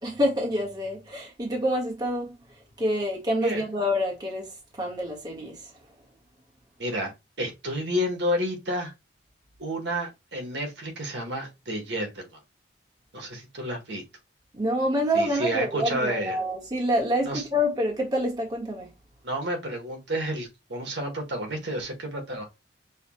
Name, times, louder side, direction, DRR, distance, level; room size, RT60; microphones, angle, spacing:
voice 1, 0.0-2.3 2.8-5.7 14.5-18.9, equal, 25° right, 1.4 m, -27 dB
voice 2, 6.8-7.1 7.4-8.9 9.6-12.4 13.1-14.0 15.1-16.4 17.2-17.4 19.2-22.4, equal, 70° right, 1.6 m, -30 dB
6.4 x 2.4 x 3.1 m
head